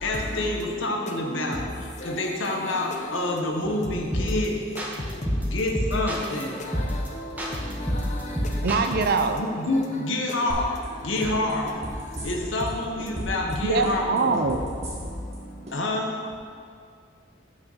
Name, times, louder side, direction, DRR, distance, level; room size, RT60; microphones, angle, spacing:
voice 1, 0.0-1.7 2.0-4.6 5.5-6.6 9.3-11.8 12.2-14.4 15.7-16.1, left 2 dB, 70° left, 2 dB, 1.0 m, -27 dB
voice 2, 2.0-2.6 2.8-3.0 6.7-8.5, left 1 dB, 40° left, 1 dB, 0.9 m, -36 dB
sound 1, 4.1-4.5 4.8-6.4 6.7-7.1 7.4-9.2, equal, 10° right, 1.0 m, -27 dB
voice 3, 8.6-9.4 13.7-14.6, right 4 dB, 50° right, 7 dB, 0.5 m, -23 dB
sound 2, 10.5-10.8 11.2-12.7 13.0-13.5 13.8-15.3 15.7-15.8, equal, 35° right, 1.6 m, -34 dB
5.9 x 5.2 x 6.2 m, 2.3 s
head